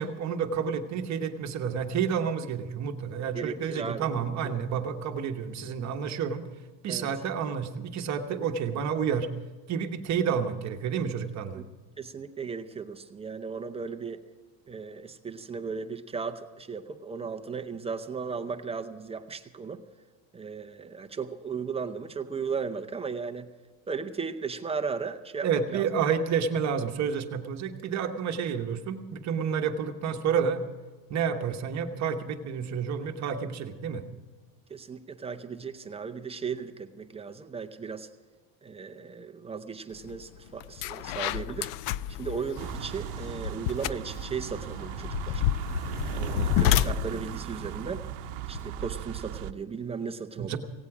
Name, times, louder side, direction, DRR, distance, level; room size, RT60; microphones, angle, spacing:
voice 1, 0.0-6.4 6.8-9.3 9.7-11.6 25.4-30.6 31.1-34.1 50.4-50.6, right 7 dB, 40° right, 5 dB, 1.2 m, -30 dB
voice 2, 3.3-4.1 6.9-7.1 11.5-11.6 12.0-14.2 14.7-19.8 20.3-23.5 23.9-25.9 34.7-38.1 38.6-41.7 42.2-45.4 46.1-48.1 48.5-50.6, right 5 dB, 15° right, 6 dB, 0.6 m, -36 dB
sound 1, 40.1-40.2 40.6-48.9, left 13 dB, 70° left, 0.5 m, -30 dB
sound 2, 42.6-49.5, right 12 dB, 70° right, 0.8 m, -37 dB
17.0 x 16.5 x 4.9 m, 1.3 s
cardioid pair, 160°, 43 cm